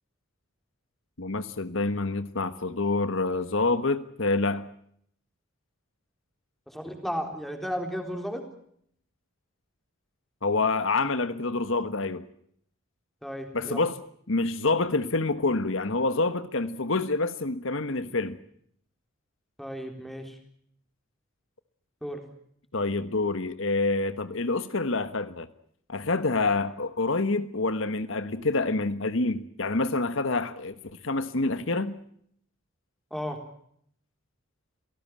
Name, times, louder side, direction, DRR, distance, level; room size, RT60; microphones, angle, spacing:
voice 1, 1.2-4.7 10.4-12.2 13.5-14.0 14.3-18.4 22.7-25.5 25.9-30.7 31.0-31.9, left 3 dB, 70° left, 11 dB, 1.3 m, -27 dB
voice 2, 6.7-8.4 13.2-13.8 19.6-20.4 22.0-22.2 33.1-33.4, equal, ahead, 4 dB, 3.9 m, -34 dB
27.5 x 18.0 x 7.6 m, 0.67 s
head